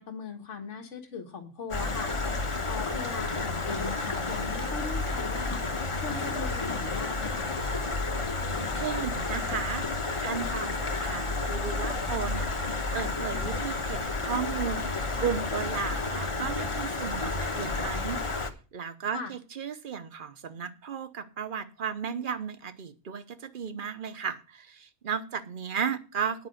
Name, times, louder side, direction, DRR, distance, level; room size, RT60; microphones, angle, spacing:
voice 1, 0.0-5.6 6.0-7.5 19.1-19.3, left 4 dB, 85° left, 3 dB, 1.8 m, -39 dB
Stream, 1.7-18.5, left 3 dB, 30° left, 1.0 m, -31 dB
voice 2, 8.7-9.9 10.2-18.4 18.7-26.5, right 7 dB, 50° right, 12 dB, 1.0 m, -35 dB
9.7 x 5.3 x 7.8 m, 0.34 s
omnidirectional pair, 1.2 m